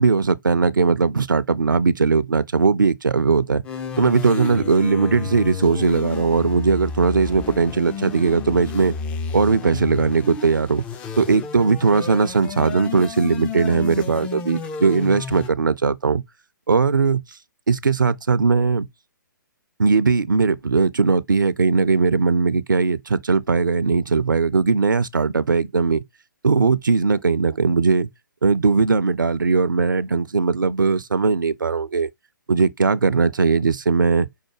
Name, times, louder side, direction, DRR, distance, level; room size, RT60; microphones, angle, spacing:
voice 1, 0.0-3.6 4.0-8.9 9.3-10.9 11.2-16.2 16.7-17.4 17.7-18.9 19.8-26.0 26.4-28.1 28.4-32.1 32.5-34.3, right 4 dB, 70° right, 0.4 m, -19 dB
sound 1, 3.6-15.5, left 5 dB, 10° left, 0.3 m, -31 dB
5.5 x 2.1 x 4.5 m
figure-of-eight pair, 130°, 11 cm